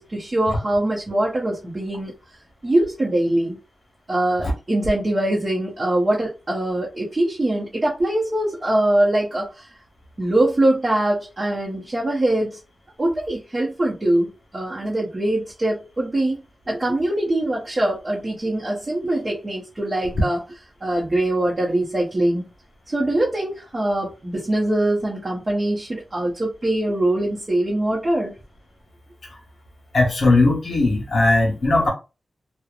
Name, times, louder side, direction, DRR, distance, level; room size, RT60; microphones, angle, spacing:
voice 1, 0.0-2.1 2.6-3.6 4.1-9.6 10.2-12.6 13.0-16.4 16.7-20.4 20.8-22.5 22.9-28.3, right 1 dB, 30° right, 0.7 m, -22 dB
voice 2, 29.9-31.9, left 2 dB, 60° left, 1.1 m, -18 dB
2.8 x 2.1 x 2.4 m
wide cardioid pair, 145°, 0 cm